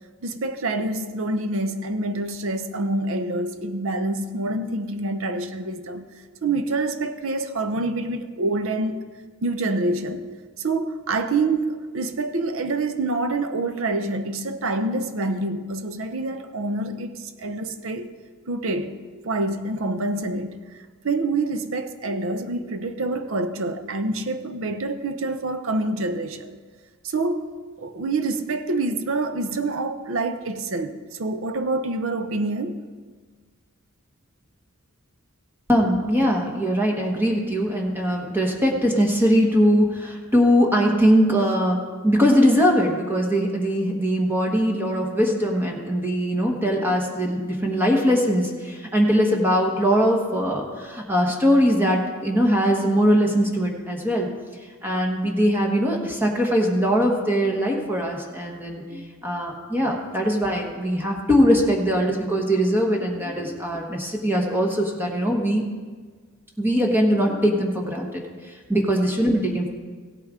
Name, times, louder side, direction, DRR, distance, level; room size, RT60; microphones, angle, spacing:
voice 1, 0.2-6.1 6.4-9.0 9.4-10.2 10.6-18.1 18.5-20.6 21.0-26.6 27.0-32.8, right 2 dB, 65° right, 0.7 m, -26 dB
voice 2, 35.7-41.8 42.0-54.3 54.8-65.6 66.6-68.2 68.7-69.7, equal, 10° right, 1.2 m, -21 dB
16.5 x 8.7 x 3.7 m
head